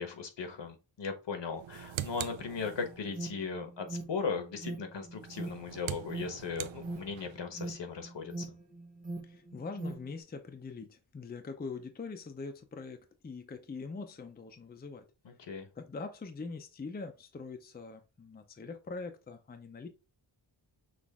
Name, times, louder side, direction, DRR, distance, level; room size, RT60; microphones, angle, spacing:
voice 1, 0.0-8.5 15.2-15.7, left 5 dB, 65° left, 1.1 m, -38 dB
sound 1, 1.5-3.2 5.1-7.5, right 12 dB, 85° right, 0.5 m, -42 dB
Alarm, 2.7-10.1, right 2 dB, 20° right, 1.0 m, -42 dB
voice 2, 9.2-15.0 15.7-19.9, left 4 dB, 20° left, 0.5 m, -43 dB
6.1 x 2.5 x 3.5 m
wide cardioid pair, 155°, 46 cm